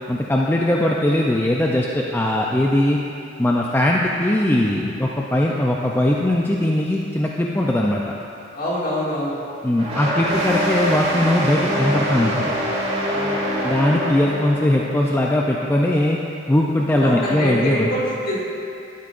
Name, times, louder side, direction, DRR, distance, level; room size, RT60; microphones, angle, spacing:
voice 1, 0.1-3.0 3.4-8.0 9.6-12.5 13.6-16.2 16.5-17.9, left 1 dB, 10° left, -2 dB, 0.4 m, -20 dB
voice 2, 8.5-9.4 13.1-13.4 17.0-18.4, equal, 50° left, -7 dB, 2.2 m, -24 dB
sound 1, 9.8-14.9, equal, 35° right, 1.5 m, -24 dB
12.0 x 8.5 x 2.5 m, 2.6 s
head